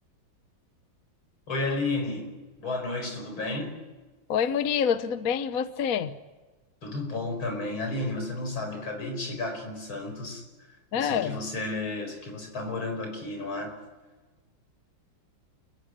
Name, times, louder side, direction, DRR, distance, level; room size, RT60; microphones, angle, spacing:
voice 1, 1.5-2.3 2.6-3.8 6.8-10.4 10.9-13.8, left 2 dB, 90° left, 5 dB, 5.6 m, -32 dB
voice 2, 4.3-6.1 10.9-11.4, left 8 dB, 55° left, 11 dB, 1.2 m, -26 dB
29.5 x 15.0 x 9.9 m, 1.2 s
omnidirectional pair, 2.2 m